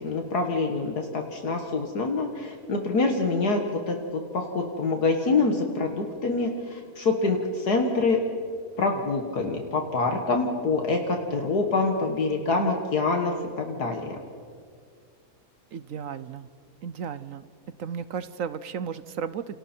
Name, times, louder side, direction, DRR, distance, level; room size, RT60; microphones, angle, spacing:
voice 1, 0.0-4.0 4.3-8.2 8.8-14.2, left 3 dB, 70° left, 3 dB, 2.2 m, -26 dB
voice 2, 15.7-16.5 16.8-17.5 17.8-19.6, right 7 dB, 60° right, 14 dB, 1.0 m, -34 dB
29.0 x 27.5 x 4.5 m, 2.1 s
omnidirectional pair, 1.8 m